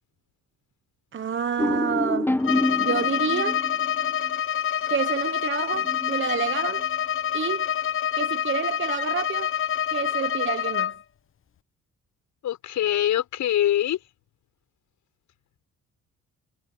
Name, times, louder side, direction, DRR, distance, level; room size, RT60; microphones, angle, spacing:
voice 1, 1.1-2.4 2.8-3.6 4.9-6.9 7.3-7.7 8.2-9.5 9.9-10.9, right 7 dB, 40° right, 1.2 m, -28 dB
sound 1, 1.6-4.4 5.7-6.9, left 1 dB, 5° left, 1.4 m, -28 dB
Bowed string instrument, 2.4-11.0, left 9 dB, 45° left, 1.0 m, -27 dB
voice 2, 12.4-14.0, left 12 dB, 75° left, 6.8 m, -23 dB
cardioid pair, 90°, 30 cm